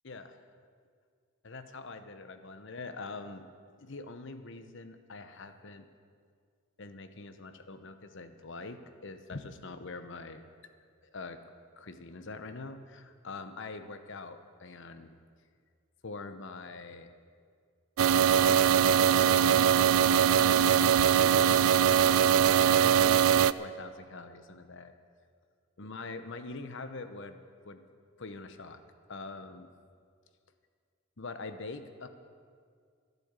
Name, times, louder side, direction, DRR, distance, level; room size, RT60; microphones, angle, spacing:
voice 1, 0.0-0.4 1.4-3.5 3.8-5.9 6.8-10.4 11.0-11.4 11.8-15.1 16.0-17.1 18.3-24.9 25.8-27.8 28.2-28.8 29.1-29.7 31.2-32.1, left 3 dB, 60° left, 9 dB, 0.9 m, -44 dB
sound 1, 18.0-23.5, right 9 dB, 85° right, 0.3 m, -22 dB
12.0 x 10.5 x 8.1 m, 2.1 s
head